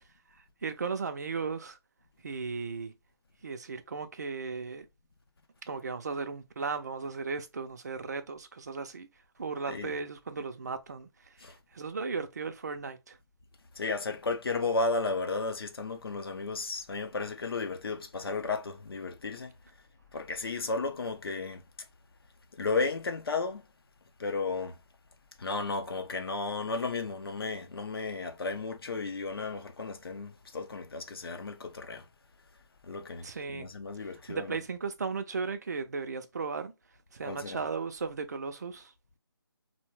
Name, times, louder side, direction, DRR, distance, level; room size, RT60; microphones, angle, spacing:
voice 1, 0.6-1.8 2.2-2.9 3.4-4.9 5.7-9.1 9.4-11.1 11.4-13.2 33.2-33.7 34.0-36.7 37.1-38.9, right 5 dB, 40° right, 0.4 m, -36 dB
voice 2, 13.8-19.5 20.1-21.6 22.6-23.6 24.2-24.8 25.4-32.1 32.8-34.6 37.3-37.6, left 3 dB, 60° left, 0.6 m, -34 dB
2.7 x 2.1 x 3.1 m
figure-of-eight pair, 160°, 14 cm